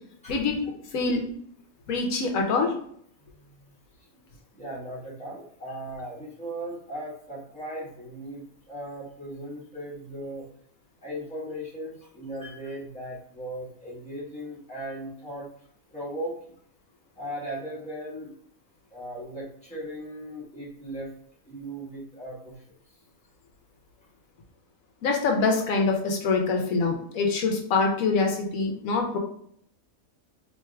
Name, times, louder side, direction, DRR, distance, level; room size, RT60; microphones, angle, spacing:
voice 1, 0.3-1.2 1.9-2.7 25.0-29.2, left 4 dB, 75° left, 2 dB, 1.1 m, -25 dB
voice 2, 3.4-3.7 4.5-10.5 11.0-15.5 15.9-16.3 17.1-18.3 18.9-21.1 21.4-22.5, right 1 dB, 5° left, -7 dB, 1.2 m, -37 dB
4.4 x 2.9 x 2.3 m, 0.64 s
omnidirectional pair, 1.5 m